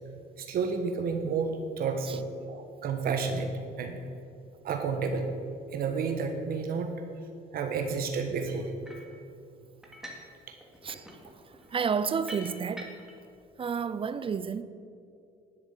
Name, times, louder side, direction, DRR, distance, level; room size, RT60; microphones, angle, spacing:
voice 1, 0.4-4.0 4.6-5.3 5.7-6.9 7.5-8.7 10.5-10.6, right 5 dB, 60° right, 1.2 m, -31 dB
sound 1, 8.8-9.2 9.8-10.3 10.6-13.2, equal, 5° right, 2.3 m, -46 dB
voice 2, 11.4-12.9 13.6-14.6, right 6 dB, 30° right, 0.5 m, -31 dB
11.0 x 7.9 x 8.3 m
cardioid pair, 110°, 17 cm